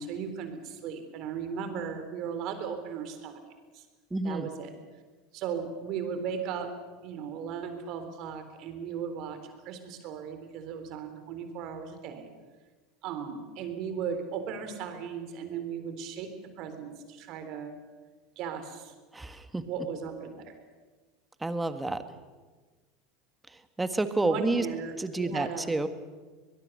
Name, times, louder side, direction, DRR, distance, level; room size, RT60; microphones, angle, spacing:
voice 1, 0.0-3.4 3.7-3.9 4.2-4.7 5.3-12.3 13.0-17.7 18.4-18.9 19.7-20.5 24.2-25.8, right 6 dB, 55° right, 8 dB, 3.8 m, -37 dB
voice 2, 4.1-4.5 19.1-19.6 21.4-22.0 23.8-24.7 25.0-25.9, right 2 dB, 10° right, 10 dB, 1.8 m, -29 dB
23.0 x 21.0 x 6.8 m, 1.3 s
hypercardioid pair, 80°, 0 cm